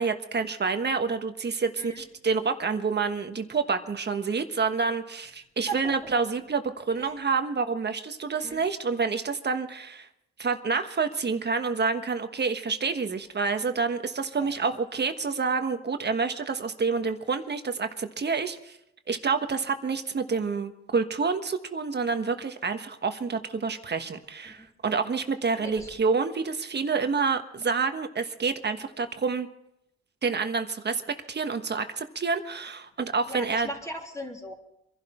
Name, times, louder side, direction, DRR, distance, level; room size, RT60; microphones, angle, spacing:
voice 1, 0.0-10.1 10.4-18.8 19.1-29.5 30.2-31.0 31.3-33.7, right 5 dB, 35° right, 7 dB, 1.3 m, -28 dB
voice 2, 25.6-25.9 33.3-34.5, right 2 dB, 10° left, 0 dB, 3.3 m, -37 dB
24.5 x 11.5 x 4.4 m, 0.81 s
cardioid pair, 90°, 30 cm